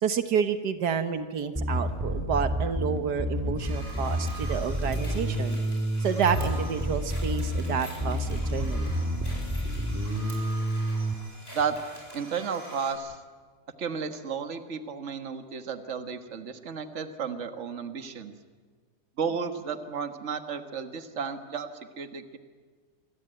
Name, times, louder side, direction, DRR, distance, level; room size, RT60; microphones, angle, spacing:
voice 1, 0.0-5.6 6.0-8.8, right 7 dB, 85° right, 9 dB, 1.8 m, -29 dB
Bass guitar, 1.6-11.1, equal, 5° right, 2.0 m, -29 dB
sound 1, 3.6-12.9, right 1 dB, 15° left, 7.2 m, -45 dB
voice 2, 12.1-13.2 13.8-18.3 19.2-21.7 22.0-22.4, right 6 dB, 45° right, 8 dB, 1.8 m, -33 dB
27.0 x 23.5 x 9.0 m, 1.5 s
omnidirectional pair, 1.7 m